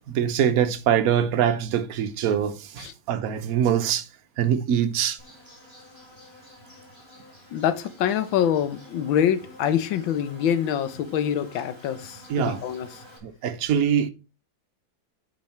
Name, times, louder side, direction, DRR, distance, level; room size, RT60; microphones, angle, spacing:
voice 1, 0.1-4.1 4.4-5.2 12.3-12.6 13.2-14.1, right 9 dB, 55° right, 1.1 m, -23 dB
Insect, 5.2-13.2, left 1 dB, 15° left, 2.6 m, -49 dB
voice 2, 7.5-13.0, left 9 dB, 80° left, 1.6 m, -25 dB
9.3 x 5.3 x 4.3 m
omnidirectional pair, 2.1 m